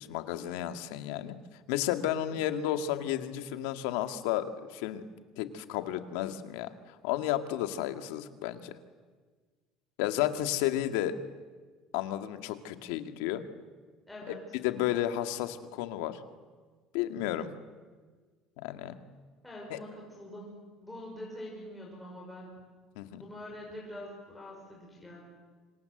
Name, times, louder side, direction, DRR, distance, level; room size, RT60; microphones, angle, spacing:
voice 1, 0.0-1.4 1.7-5.0 5.4-8.8 10.0-11.1 11.9-13.4 14.6-16.2 16.9-17.5 18.6-19.0 19.7-19.8 23.0-23.2, left 12 dB, 90° left, 8 dB, 2.0 m, -32 dB
voice 2, 14.1-14.4 19.4-22.5 23.1-25.2, left 1 dB, 5° left, -4 dB, 5.5 m, -45 dB
28.5 x 26.0 x 8.0 m, 1.5 s
cardioid pair, 160°, 0 cm